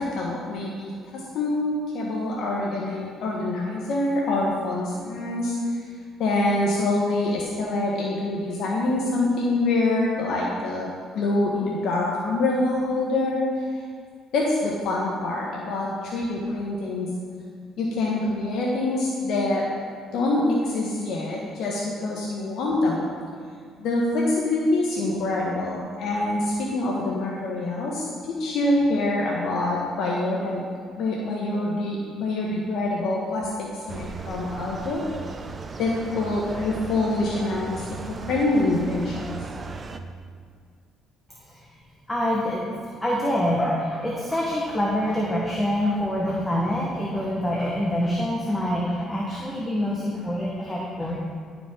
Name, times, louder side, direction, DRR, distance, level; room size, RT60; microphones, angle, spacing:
voice 1, 0.0-5.6 6.2-13.7 14.3-17.1 17.8-19.8 20.1-23.1 23.8-30.6 31.0-35.0 35.8-37.8 38.2-39.4, left 2 dB, 70° left, -3 dB, 1.0 m, -25 dB
sound 1, 33.9-40.0, right 4 dB, 30° right, 0.5 m, -36 dB
voice 2, 42.1-42.7 43.0-51.2, equal, 10° left, -4 dB, 1.1 m, -25 dB
11.0 x 5.1 x 3.6 m, 2.1 s
cardioid pair, 100°, 0 cm